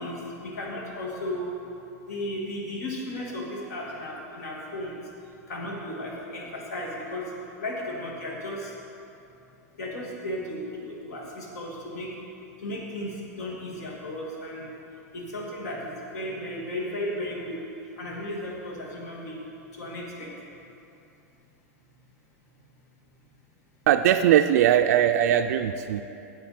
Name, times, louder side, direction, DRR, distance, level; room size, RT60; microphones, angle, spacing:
voice 1, 0.0-1.5 2.1-5.0 5.5-7.3 7.6-8.7 9.8-12.1 12.6-14.7 15.1-17.6 18.0-19.4 19.7-20.3, left 1 dB, 80° left, -2 dB, 2.3 m, -35 dB
voice 2, 23.9-26.0, right 10 dB, 75° right, 7 dB, 0.3 m, -20 dB
10.0 x 7.9 x 4.3 m, 2.8 s
supercardioid pair, 140°, 8 cm